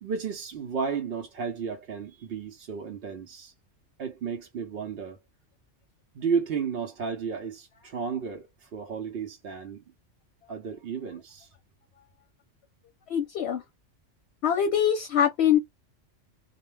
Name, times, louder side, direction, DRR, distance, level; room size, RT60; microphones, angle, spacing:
voice 1, 0.0-3.5 4.0-5.2 6.1-9.8 10.5-11.5, right 6 dB, 60° right, 0.8 m, -33 dB
voice 2, 13.1-13.6 14.4-15.6, left 9 dB, 65° left, 0.8 m, -23 dB
2.3 x 2.1 x 3.1 m
omnidirectional pair, 1.3 m